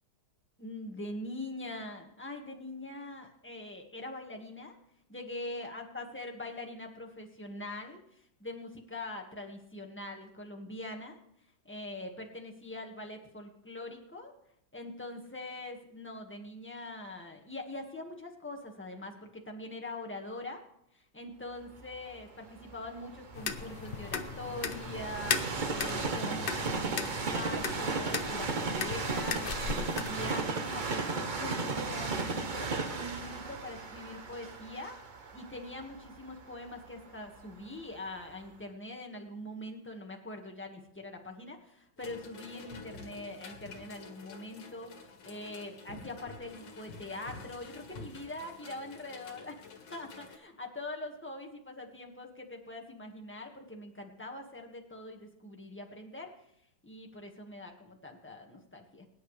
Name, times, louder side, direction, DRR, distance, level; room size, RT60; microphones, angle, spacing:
voice 1, 0.6-4.8 5.1-11.2 11.6-14.3 14.7-20.6 20.9-25.4 25.7-35.0 35.3-49.6 49.9-56.4 56.8-59.1, left 2 dB, 5° left, 1 dB, 1.5 m, -43 dB
Train, 21.8-37.7 38.3-38.4, right 4 dB, 35° right, 0.8 m, -36 dB
sound 1, 23.3-30.4, left 6 dB, 50° left, 0.6 m, -37 dB
sound 2, 42.0-50.4, left 4 dB, 80° left, 2.2 m, -49 dB
22.0 x 10.0 x 3.3 m, 0.73 s
omnidirectional pair, 1.9 m